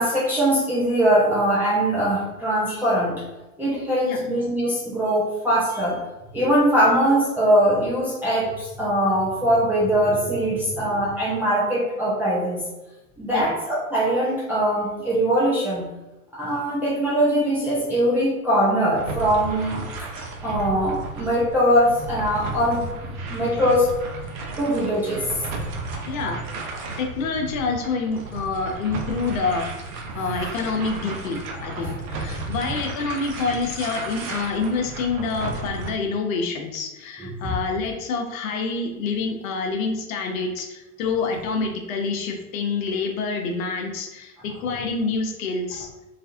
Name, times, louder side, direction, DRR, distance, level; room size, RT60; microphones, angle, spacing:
voice 1, 0.0-3.1 3.6-6.0 6.3-12.6 13.2-15.9 16.3-20.1 20.4-22.8 23.3-23.9 24.6-25.3 31.8-31.9 37.2-37.3, equal, 5° right, -8 dB, 0.3 m, -21 dB
sound 1, 18.9-35.9, right 3 dB, 65° right, 0.7 m, -33 dB
voice 2, 26.1-26.4 27.0-29.7 30.1-45.9, left 4 dB, 65° left, 3 dB, 0.7 m, -27 dB
2.4 x 2.3 x 2.7 m, 1.0 s
hypercardioid pair, 90°, 44 cm